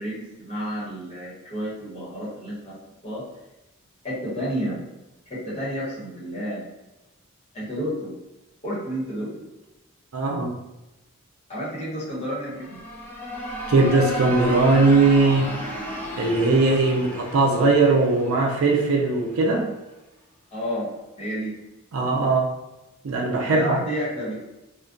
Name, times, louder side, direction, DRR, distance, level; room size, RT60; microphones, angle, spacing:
voice 1, 0.0-2.8 3.0-3.2 4.0-4.8 5.3-6.6 7.5-8.1 8.6-9.4 11.5-12.8 20.5-20.9 21.2-21.5 23.4-24.4, equal, 30° left, -8 dB, 1.0 m, -30 dB
voice 2, 10.1-10.6 13.7-15.5 16.2-19.7 21.9-22.5 23.0-23.8, right 3 dB, 75° right, 0 dB, 0.4 m, -19 dB
sound 1, 12.5-19.3, equal, 10° left, 0.5 m, -33 dB
2.3 x 2.1 x 2.4 m, 0.98 s
head